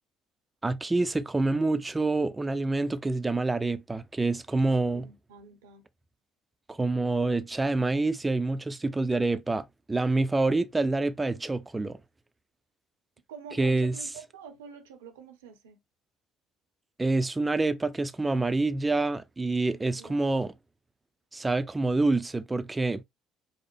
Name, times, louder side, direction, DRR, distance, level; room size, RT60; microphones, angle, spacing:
voice 1, 0.6-5.1 6.7-12.0 13.6-13.9 17.0-20.5 21.3-23.0, right 2 dB, 20° right, 0.5 m, -27 dB
voice 2, 4.6-5.9 13.3-15.8 19.8-20.2, right 6 dB, 80° right, 0.7 m, -47 dB
5.2 x 2.1 x 3.2 m
figure-of-eight pair, 50°, 0 cm